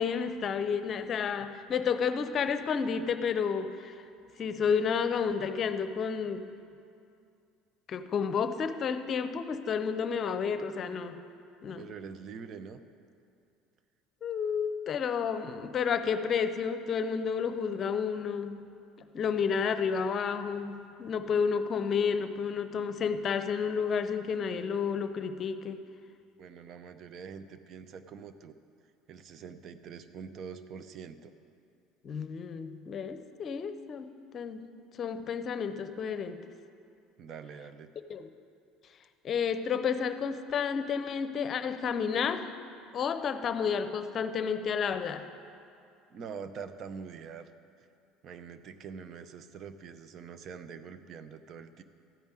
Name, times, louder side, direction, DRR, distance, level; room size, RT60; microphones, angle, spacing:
voice 1, 0.0-4.0 4.4-6.5 7.9-11.2 11.6-11.8 14.2-18.6 19.1-25.8 32.0-34.7 35.0-36.4 38.1-38.3 39.2-42.5 42.9-45.3, left 6 dB, 45° left, 10 dB, 0.7 m, -31 dB
voice 2, 11.8-12.8 26.4-28.5 29.1-31.3 37.2-38.0 46.1-47.5 47.8-47.9 48.2-51.8, right 6 dB, 50° right, 11 dB, 0.7 m, -44 dB
13.5 x 5.4 x 9.0 m, 2.5 s
hypercardioid pair, 75°, 0 cm